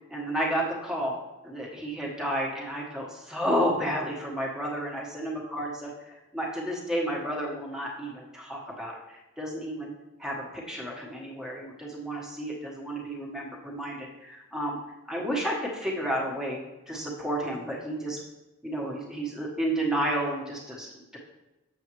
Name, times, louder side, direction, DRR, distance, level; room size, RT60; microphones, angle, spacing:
voice 1, 0.1-1.1 1.4-5.9 6.3-9.9 10.2-14.8 15.1-16.6 16.9-18.2 18.6-21.2, right 1 dB, 5° right, -3 dB, 1.2 m, -31 dB
7.1 x 6.9 x 3.1 m, 1.0 s
head